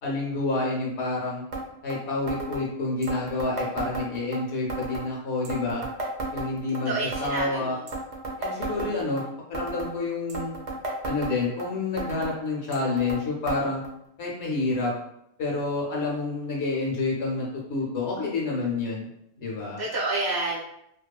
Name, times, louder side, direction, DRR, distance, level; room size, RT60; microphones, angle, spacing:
voice 1, 0.0-1.4 1.8-5.8 6.3-6.9 7.2-7.8 8.4-9.2 9.5-10.6 11.0-13.8 14.2-14.9 15.4-19.1 19.4-19.8, left 3 dB, 65° left, -2 dB, 0.8 m, -28 dB
sound 1, 1.5-1.6 1.9-2.0 2.3-2.6 3.0-4.4 4.7-5.1 5.4-6.8 7.1-7.5 7.9-9.2 9.5-9.9 10.3-11.7 12.0-12.3 12.7-13.2 13.5-13.6 13.8-13.9 14.7-14.8 15.6-15.7, right 2 dB, 65° right, 0.4 m, -33 dB
voice 2, 6.8-7.9 8.5-9.0 19.8-20.6, right 3 dB, 25° right, -5 dB, 0.6 m, -30 dB
2.7 x 2.3 x 2.2 m, 0.77 s
omnidirectional pair, 1.4 m